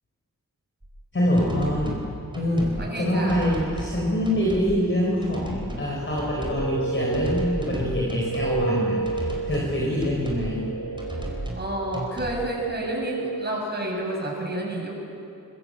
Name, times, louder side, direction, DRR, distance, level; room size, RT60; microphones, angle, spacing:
sound 1, 0.8-0.9 1.4-2.1 2.3-2.8 3.3-4.0 4.2-4.7 5.2-5.9 6.2-6.7 7.1-8.5 9.0-9.7 10.0-10.5 11.0-11.7 11.9-12.4, right 1 dB, 15° right, 5.0 m, -34 dB
voice 1, 1.1-1.9 2.3-2.7 3.0-10.6, equal, 35° left, -3 dB, 4.5 m, -25 dB
voice 2, 2.7-3.7 11.5-14.9, right 1 dB, 30° right, -2 dB, 7.7 m, -30 dB
sound 2, 6.0-13.8, right 3 dB, 55° left, 4.9 m, -32 dB
25.5 x 22.5 x 7.8 m, 2.6 s
wide cardioid pair, 125°, 35 cm